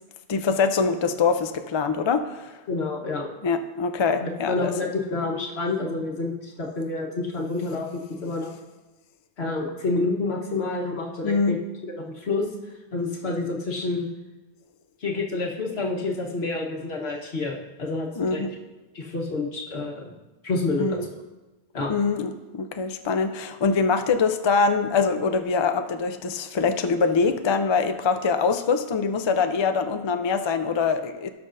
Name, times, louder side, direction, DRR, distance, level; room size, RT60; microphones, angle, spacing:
voice 1, 0.3-2.5 3.4-4.7 11.2-11.6 18.2-18.5 20.8-21.0 21.9-31.3, left 5 dB, 50° left, 7 dB, 0.3 m, -24 dB
voice 2, 2.7-3.3 4.2-8.5 9.4-11.6 11.8-12.5 12.9-14.1 15.0-18.4 18.9-20.1 20.4-21.0 21.7-21.9, left 3 dB, 70° left, 0 dB, 1.4 m, -28 dB
17.5 x 6.0 x 2.5 m, 1.1 s
omnidirectional pair, 1.1 m